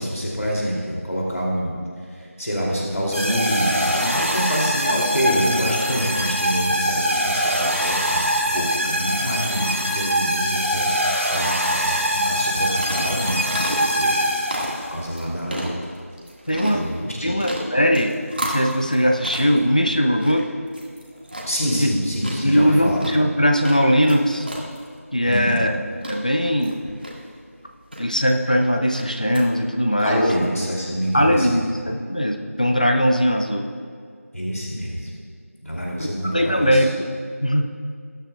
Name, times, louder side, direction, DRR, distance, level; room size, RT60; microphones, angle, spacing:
voice 1, 0.0-1.8 2.4-13.7 13.9-14.2 14.5-15.7 16.7-17.3 21.5-23.0 25.3-25.6 30.0-31.5 34.3-35.1 35.6-36.8, equal, 70° left, -3 dB, 2.6 m, -26 dB
sound 1, 3.1-14.9, equal, 70° right, 2.8 m, -23 dB
sound 2, 12.3-29.4, equal, 40° right, 1.7 m, -34 dB
voice 2, 16.5-16.9 17.2-18.1 18.4-20.5 21.8-21.9 22.4-24.5 25.1-25.7 26.1-26.9 28.0-30.3 31.1-33.7 36.0-37.0 37.4-37.7, equal, 30° left, 4 dB, 0.5 m, -20 dB
21.0 x 9.3 x 2.3 m, 2.1 s
figure-of-eight pair, 175°, 8 cm